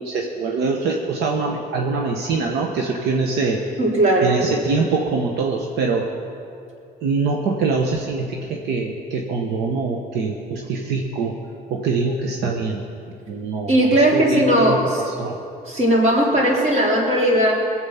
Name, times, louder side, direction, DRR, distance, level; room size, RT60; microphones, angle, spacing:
voice 1, 0.0-3.6 4.2-6.1 7.0-11.3 11.7-12.8 13.3-15.4, right 4 dB, 75° right, 1 dB, 1.1 m, -24 dB
voice 2, 3.8-4.3 13.7-15.0 15.7-17.5, right 1 dB, 40° right, -3 dB, 3.5 m, -17 dB
20.0 x 7.9 x 5.7 m, 2.6 s
cardioid pair, 110°, 17 cm